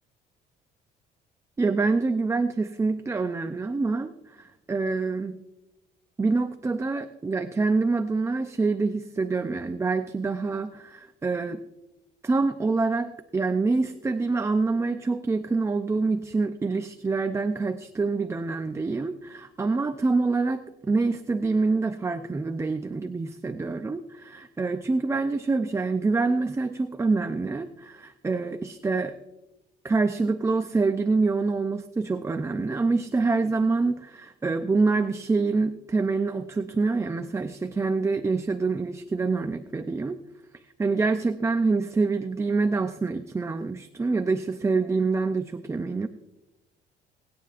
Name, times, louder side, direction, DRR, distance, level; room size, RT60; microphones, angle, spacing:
voice 1, 1.6-5.4 6.2-11.6 12.2-29.1 29.8-40.2 40.8-46.1, right 3 dB, 15° right, 8 dB, 0.5 m, -26 dB
27.0 x 9.5 x 2.5 m, 0.98 s
cardioid pair, 110°, 17 cm